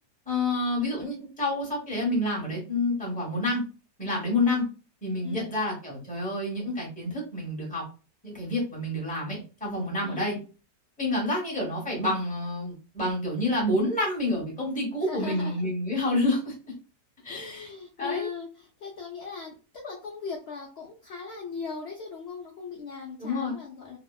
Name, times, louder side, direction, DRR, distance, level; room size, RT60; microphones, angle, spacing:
voice 1, 0.3-3.6 4.0-4.7 5.0-7.8 8.2-10.4 11.0-16.5 17.2-17.7 18.0-18.3 23.2-23.5, left 1 dB, 5° left, -3 dB, 0.7 m, -28 dB
voice 2, 5.2-5.6 10.0-10.4 15.0-15.6 17.3-24.0, left 5 dB, 85° left, -2 dB, 0.5 m, -38 dB
2.8 x 2.0 x 2.3 m, 0.35 s
omnidirectional pair, 1.8 m